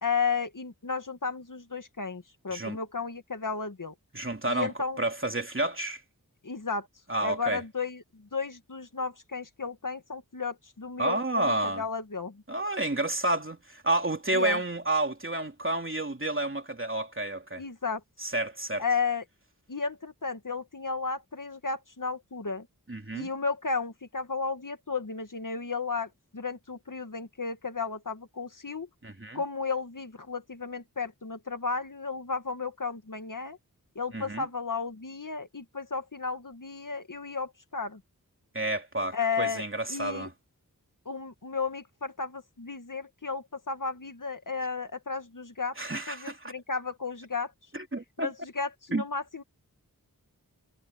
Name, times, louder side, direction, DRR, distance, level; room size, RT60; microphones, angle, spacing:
voice 1, 0.0-3.9 4.5-5.0 6.4-6.9 7.2-12.4 14.3-14.6 17.6-18.0 18.8-19.2 19.7-22.7 23.1-28.9 29.3-33.6 34.0-38.0 39.1-39.6 39.9-40.3 41.1-45.8 46.1-47.5 48.2-49.4, left 4 dB, 60° left, 2.1 m, -33 dB
voice 2, 4.1-4.7 5.0-6.0 7.1-7.6 11.0-11.8 12.5-17.6 18.2-18.8 22.9-23.3 29.0-29.4 34.1-34.5 38.5-40.3 45.8-46.5 47.7-48.3 48.9-49.0, right 2 dB, 35° right, 3.0 m, -30 dB
wide cardioid pair, 45°, 36 cm